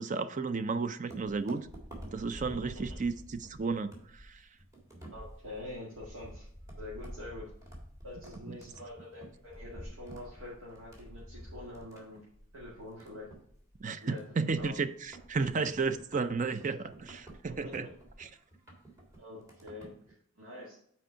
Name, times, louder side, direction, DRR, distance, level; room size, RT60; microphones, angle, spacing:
voice 1, 0.0-1.7 2.1-4.4 8.5-8.6 13.8-17.9 18.2-18.3, right 4 dB, 40° right, 0.5 m, -33 dB
sound 1, 1.1-20.1, equal, 15° right, 1.8 m, -49 dB
voice 2, 5.1-6.5 6.8-7.5 8.0-12.2 12.5-13.3 14.0-14.2 14.4-14.7 17.6-17.7 19.2-19.9 20.4-20.8, left 2 dB, 85° right, 2.0 m, -45 dB
6.4 x 4.5 x 5.6 m
head